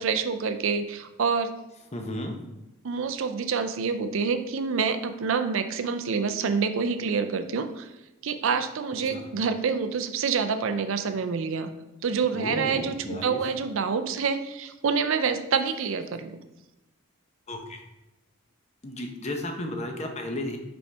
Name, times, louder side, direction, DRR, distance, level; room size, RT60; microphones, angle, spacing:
voice 1, 0.0-1.5 2.8-7.9 8.2-11.7 12.0-16.4, right 5 dB, 60° right, 9 dB, 0.4 m, -27 dB
voice 2, 1.9-2.3 9.0-9.3 12.3-13.4 17.5-17.8 18.8-20.6, left 1 dB, 30° left, 4 dB, 0.7 m, -33 dB
5.5 x 5.4 x 3.3 m, 1.0 s
head